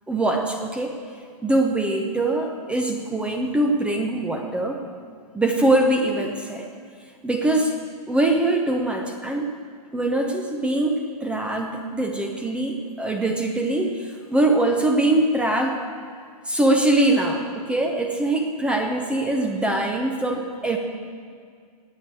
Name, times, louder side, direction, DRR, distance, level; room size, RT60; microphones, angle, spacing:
voice 1, 0.1-1.0 1.4-4.8 5.3-6.7 7.2-7.7 8.1-9.5 9.9-15.8 16.5-20.8, right 1 dB, 5° right, 3 dB, 0.7 m, -23 dB
18.0 x 8.4 x 4.8 m, 2.1 s
hypercardioid pair, 155°, 20 cm